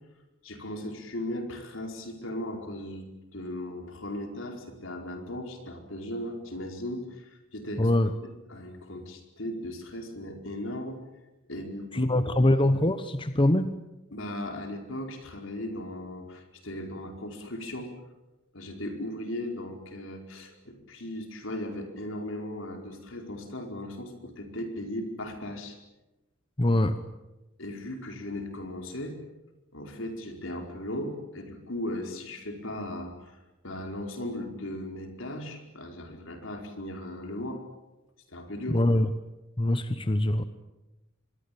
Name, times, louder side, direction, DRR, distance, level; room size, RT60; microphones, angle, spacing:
voice 1, 0.4-11.0 11.5-12.4 14.1-17.9 18.5-25.8 27.6-29.2 29.7-33.4 33.6-37.6 38.3-38.8, left 1 dB, 75° left, 4 dB, 4.9 m, -37 dB
voice 2, 7.8-8.1 11.9-13.7 26.6-27.0 38.7-39.1 39.6-40.4, left 1 dB, 25° left, 10 dB, 1.0 m, -23 dB
26.0 x 22.0 x 8.7 m, 1.0 s
head